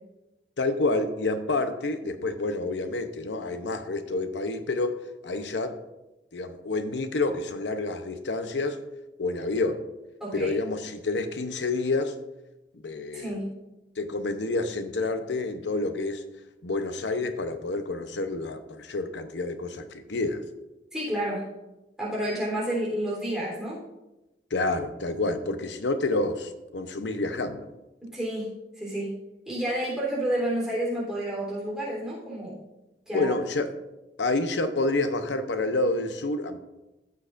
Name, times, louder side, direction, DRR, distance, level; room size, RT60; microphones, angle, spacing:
voice 1, 0.6-5.8 6.3-8.8 9.2-9.8 10.3-12.2 12.8-13.4 14.0-16.2 16.6-20.4 24.5-27.7 33.1-33.7 34.2-36.6, left 2 dB, 85° left, 8 dB, 0.8 m, -28 dB
voice 2, 10.2-10.5 13.1-13.5 20.9-21.5 22.0-23.8 28.0-29.2 29.5-32.6 33.1-33.4, right 1 dB, 5° right, -6 dB, 3.5 m, -30 dB
15.0 x 6.5 x 2.5 m, 1.0 s
head